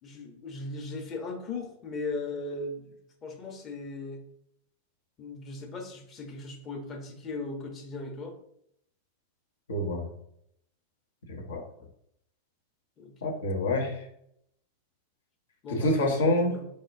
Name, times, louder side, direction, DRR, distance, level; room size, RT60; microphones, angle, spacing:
voice 1, 0.0-4.2 5.2-8.3 13.0-13.3 15.6-16.7, left 3 dB, 30° left, 2 dB, 0.9 m, -38 dB
voice 2, 9.7-10.1 11.3-11.6 13.2-14.0 15.7-16.5, left 1 dB, 65° left, 1 dB, 1.0 m, -27 dB
4.1 x 3.3 x 2.6 m, 0.72 s
figure-of-eight pair, 90°, 0 cm